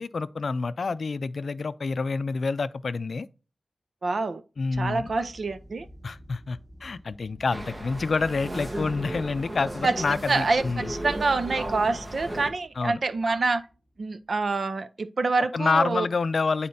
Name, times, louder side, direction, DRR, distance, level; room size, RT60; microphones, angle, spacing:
voice 1, 0.0-3.3 4.6-5.1 6.0-10.9 12.8-13.0 15.5-16.7, left 4 dB, 75° left, 0.4 m, -28 dB
voice 2, 4.0-4.4 4.8-5.9 9.8-13.7 14.0-16.1, right 3 dB, 70° right, 0.6 m, -26 dB
sound 1, 4.7-13.8 14.0-14.2, equal, 20° right, 3.5 m, -53 dB
sound 2, 7.5-12.5, right 1 dB, 35° right, 1.2 m, -35 dB
10.0 x 4.2 x 2.7 m
cardioid pair, 60°, 0 cm